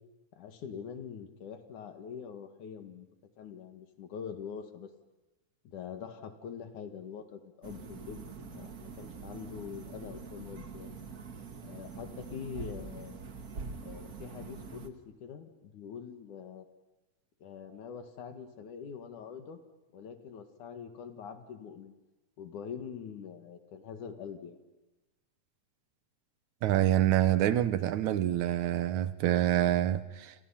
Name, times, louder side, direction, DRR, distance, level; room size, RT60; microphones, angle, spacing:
voice 1, 0.3-3.1 3.4-4.9 5.6-10.9 11.6-13.2 13.8-14.9 15.2-16.7 17.4-19.6 19.9-21.9 22.4-24.6, left 7 dB, 80° left, 3.4 m, -44 dB
sound 1, 7.6-14.9, right 4 dB, 40° right, 1.4 m, -44 dB
voice 2, 26.6-30.4, right 12 dB, 75° right, 2.4 m, -26 dB
29.5 x 27.5 x 5.8 m
omnidirectional pair, 3.5 m